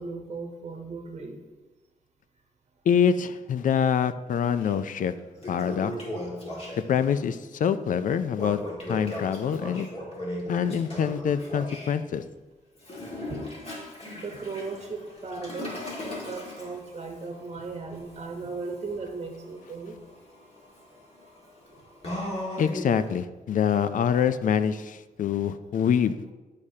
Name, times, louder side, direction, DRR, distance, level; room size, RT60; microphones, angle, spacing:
voice 1, 0.0-1.4 13.3-13.4 14.1-15.8 16.3-19.9, right 4 dB, 45° right, 1 dB, 1.0 m, -36 dB
voice 2, 2.9-5.1 5.5-5.9 6.9-8.6 8.9-9.9 10.5-12.2 22.6-26.2, left 7 dB, 65° left, 13 dB, 0.4 m, -25 dB
Toilet flush, 4.6-4.7 5.2-7.1 8.3-11.9 12.8-23.1, left 1 dB, 40° left, 1.9 m, -38 dB
10.5 x 4.9 x 2.8 m, 1.2 s
cardioid pair, 100°, 15 cm